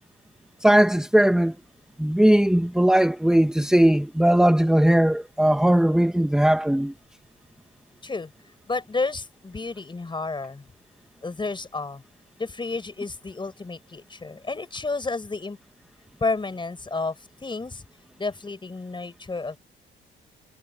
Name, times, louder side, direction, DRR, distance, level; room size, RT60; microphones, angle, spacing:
voice 1, 0.6-1.5 2.0-6.9, right 1 dB, 5° right, 1.4 m, -19 dB
voice 2, 8.7-10.6 11.2-12.0 12.4-15.6 16.2-17.8 18.2-19.6, left 3 dB, 25° left, 4.9 m, -31 dB
cardioid pair, 90°, 20 cm